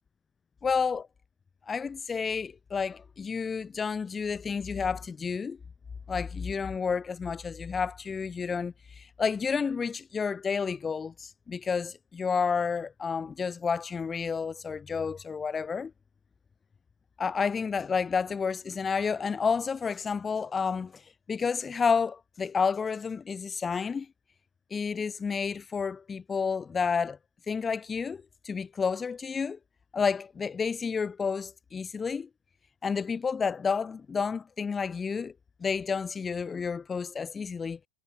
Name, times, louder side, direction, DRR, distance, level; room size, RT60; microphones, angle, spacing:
voice 1, 0.6-1.1 1.7-5.6 6.1-15.9 17.2-21.0 21.3-24.1 24.7-27.2 27.5-29.6 29.9-32.3 32.8-35.3 35.6-37.8, left 5 dB, 15° left, 1.9 m, -30 dB
figure-of-eight pair, 90°, 0 cm